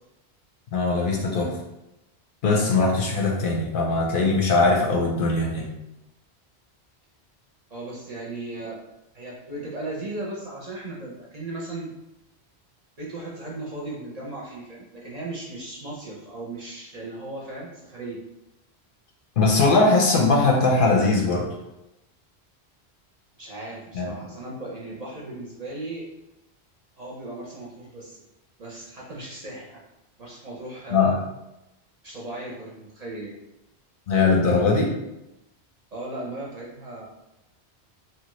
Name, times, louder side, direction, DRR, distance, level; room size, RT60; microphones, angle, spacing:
voice 1, 0.7-1.6 2.4-5.7 19.4-21.5 23.9-24.1 30.9-31.1 34.1-34.9, left 3 dB, 60° left, -1 dB, 0.7 m, -20 dB
voice 2, 7.7-8.8 9.1-11.9 13.0-18.2 23.4-26.1 27.0-28.2 28.6-29.8 30.2-31.2 32.0-33.4 35.9-37.1, right 2 dB, 45° right, -4 dB, 0.6 m, -36 dB
2.9 x 2.3 x 3.0 m, 0.91 s
omnidirectional pair, 1.1 m